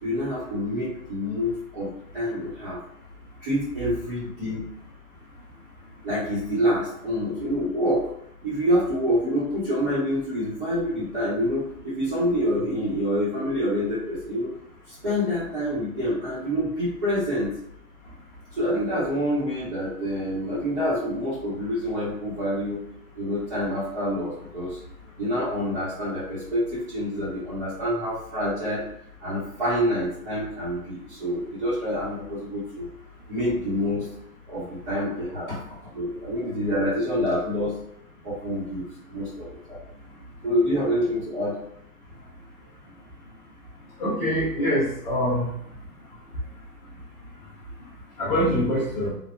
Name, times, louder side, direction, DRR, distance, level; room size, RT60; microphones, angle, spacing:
voice 1, 0.0-2.8 3.4-4.7 6.0-8.1 8.4-14.5 14.9-17.5 18.5-22.8 23.1-24.8 25.2-28.8 29.2-32.9 33.3-34.1 34.5-35.6 35.9-37.7 38.2-39.8 40.4-41.6, equal, 35° right, -11 dB, 1.4 m, -27 dB
voice 2, 44.0-45.5 48.2-49.1, equal, 5° left, -11 dB, 0.6 m, -24 dB
3.8 x 2.7 x 2.5 m, 0.73 s
hypercardioid pair, 155°, 47 cm